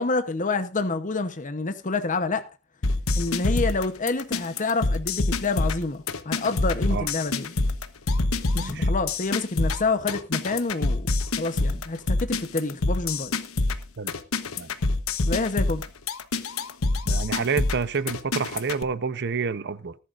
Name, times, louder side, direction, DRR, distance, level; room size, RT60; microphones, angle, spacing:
voice 1, 0.0-2.4 3.2-7.5 8.5-11.1 11.4-13.3 15.3-15.8, left 3 dB, 35° left, 0.9 m, -27 dB
sound 1, 2.8-18.8, left 2 dB, 80° left, 1.1 m, -26 dB
voice 2, 8.5-8.9 14.0-14.1 14.6-14.7 17.1-20.0, right 5 dB, 55° right, 0.8 m, -28 dB
19.0 x 11.5 x 2.5 m
head